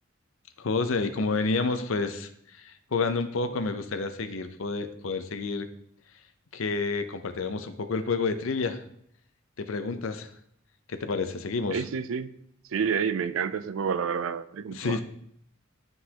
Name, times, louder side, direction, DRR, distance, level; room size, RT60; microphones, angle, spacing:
voice 1, 0.6-5.7 6.5-8.8 9.6-10.3 10.9-11.8 14.7-15.0, left 4 dB, 75° left, 9 dB, 0.6 m, -29 dB
voice 2, 11.7-12.3 12.7-15.0, right 6 dB, 70° right, 13 dB, 0.4 m, -29 dB
11.5 x 3.9 x 2.9 m, 0.71 s
head